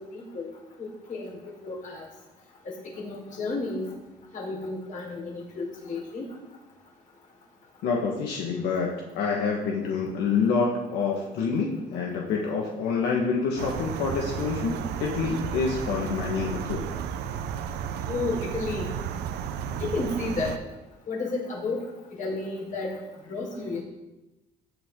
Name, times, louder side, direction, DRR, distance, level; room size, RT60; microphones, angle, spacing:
voice 1, 0.1-0.5 0.8-2.1 2.6-3.9 4.3-6.2 18.1-18.9 19.8-20.6 21.1-21.8 22.1-22.9 23.3-23.8, left 3 dB, 50° left, -2 dB, 4.5 m, -32 dB
voice 2, 7.8-16.8, left 5 dB, 85° left, 0 dB, 1.7 m, -27 dB
sound 1, 13.6-20.6, right 8 dB, 85° right, 0.9 m, -33 dB
16.5 x 8.4 x 3.9 m, 1.0 s
cardioid pair, 110°, 17 cm